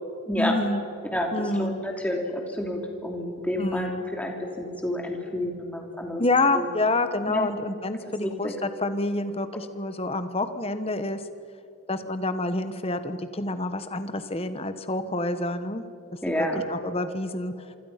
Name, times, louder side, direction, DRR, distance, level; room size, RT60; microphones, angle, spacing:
voice 1, 0.4-0.8 1.3-1.8 3.6-4.0 6.2-11.2 11.9-15.8 16.7-17.5, left 2 dB, 25° left, 10 dB, 1.2 m, -27 dB
voice 2, 1.1-6.2 6.5-6.7 7.3-7.5 8.2-8.5 16.2-16.6, left 1 dB, 5° left, 1 dB, 3.1 m, -29 dB
27.0 x 25.5 x 5.9 m, 2.7 s
head